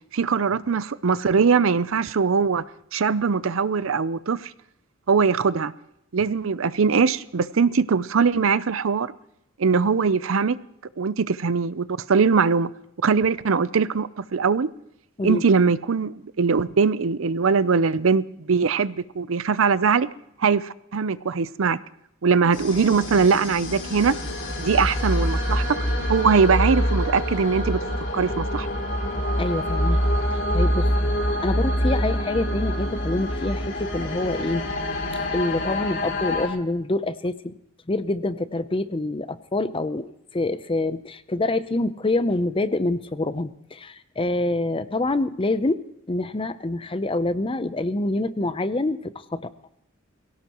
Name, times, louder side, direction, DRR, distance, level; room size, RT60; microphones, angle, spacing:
voice 1, 0.1-2.6 2.9-4.5 5.1-5.7 6.1-9.1 9.6-10.6 11.0-12.7 13.0-14.7 15.2-20.1 20.4-21.8 22.2-24.2 24.6-25.8 26.1-27.8 28.1-28.7, right 5 dB, 70° right, 0.6 m, -21 dB
sound 1, 22.5-36.5, equal, 60° left, 2.9 m, -25 dB
voice 2, 29.4-30.0 30.3-31.1 31.4-34.7 35.1-37.6 37.9-45.8 46.1-49.5, left 2 dB, 25° left, 0.6 m, -26 dB
22.5 x 17.0 x 3.0 m
head